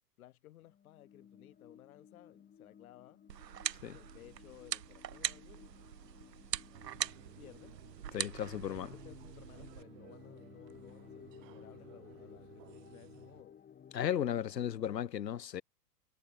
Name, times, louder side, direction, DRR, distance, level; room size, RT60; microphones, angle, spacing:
voice 1, 0.2-3.2 3.9-5.7 7.4-7.8 8.5-13.6 14.5-15.0, left 15 dB, 60° left, 3.6 m, -58 dB
sound 1, 0.6-15.0, left 8 dB, 20° left, 3.7 m, -57 dB
sound 2, 3.3-9.8, right 11 dB, 85° right, 0.8 m, -42 dB
sound 3, 6.7-13.4, right 22 dB, 50° right, 4.9 m, -58 dB
voice 2, 8.1-8.9 13.9-15.6, left 10 dB, 85° left, 0.9 m, -35 dB
hypercardioid pair, 110°, 48 cm